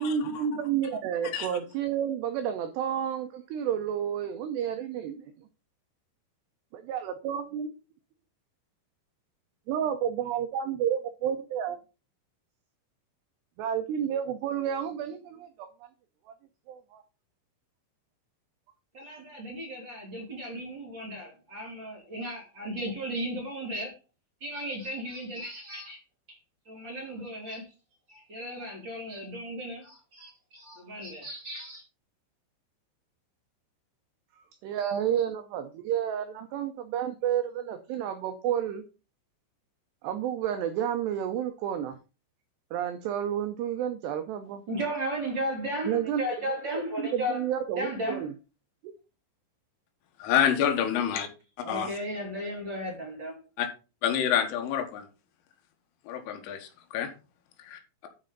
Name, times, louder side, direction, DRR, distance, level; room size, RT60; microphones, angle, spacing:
voice 1, 0.0-5.3 6.7-7.7 9.7-11.8 13.6-15.7 16.3-16.4 16.7-17.0 34.6-38.8 40.0-42.0 42.7-44.6 45.9-46.2 46.7-48.3 48.8-48.9, right 9 dB, 85° right, 2.4 m, -30 dB
voice 2, 18.9-23.9 24.4-26.0 26.3-26.4 26.6-27.7 28.1-31.8 44.7-47.4 47.7-48.3 51.6-53.4, equal, 25° right, 3.0 m, -35 dB
voice 3, 50.2-51.3 51.7-51.9 53.6-53.7 54.0-55.1 56.1-57.1 57.6-58.1, left 9 dB, 85° left, 3.9 m, -28 dB
11.5 x 5.4 x 3.9 m
omnidirectional pair, 5.8 m